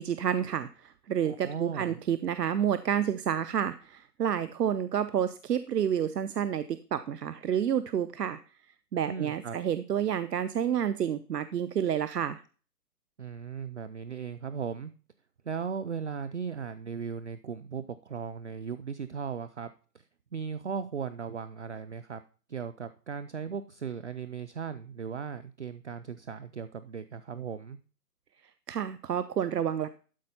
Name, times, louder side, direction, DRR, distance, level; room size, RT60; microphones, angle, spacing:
voice 1, 0.0-8.4 8.9-12.4 28.7-29.9, right 9 dB, 80° right, 14 dB, 0.8 m, -29 dB
voice 2, 1.2-2.0 9.1-9.6 13.2-14.9 15.4-20.1 20.3-22.2 22.5-27.8, right 6 dB, 50° right, 13 dB, 0.5 m, -37 dB
12.5 x 4.5 x 5.5 m, 0.38 s
hypercardioid pair, 170°, 48 cm